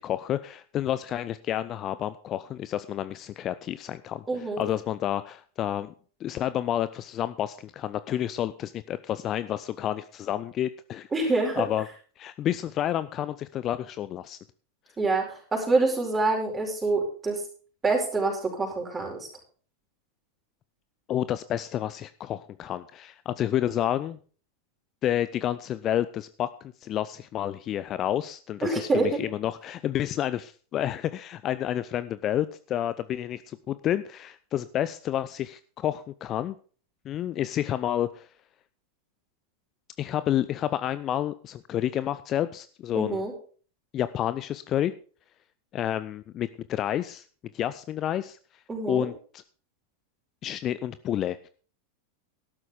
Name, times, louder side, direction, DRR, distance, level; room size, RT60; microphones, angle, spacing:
voice 1, 0.0-5.9 6.2-11.1 11.5-11.9 12.2-14.4 21.1-24.2 25.0-26.5 26.8-36.5 37.1-38.3 40.0-43.2 43.9-44.9 45.7-47.2 47.5-48.4 48.9-49.4 50.4-51.5, left 11 dB, 30° left, 14 dB, 0.5 m, -30 dB
voice 2, 4.3-4.6 11.1-11.6 15.0-17.4 17.8-19.3 28.6-29.2 42.9-43.3 48.7-49.1, right 3 dB, 15° right, 1 dB, 5.0 m, -26 dB
13.5 x 12.0 x 3.8 m, 0.40 s
figure-of-eight pair, 90°, 0 cm